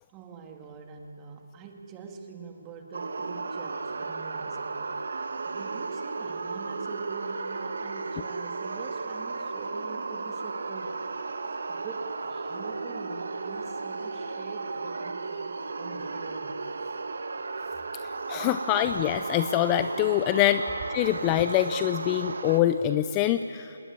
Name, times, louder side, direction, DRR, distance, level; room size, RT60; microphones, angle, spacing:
voice 1, 0.1-4.9 5.5-11.1 11.7-16.6, right 4 dB, 15° right, 3 dB, 2.1 m, -44 dB
sound 1, 2.9-22.6, right 4 dB, 70° right, 1.8 m, -34 dB
voice 2, 18.0-20.6 20.9-23.8, left 12 dB, 20° left, 10 dB, 0.5 m, -25 dB
26.5 x 19.5 x 9.6 m, 2.7 s
hypercardioid pair, 165°, 0 cm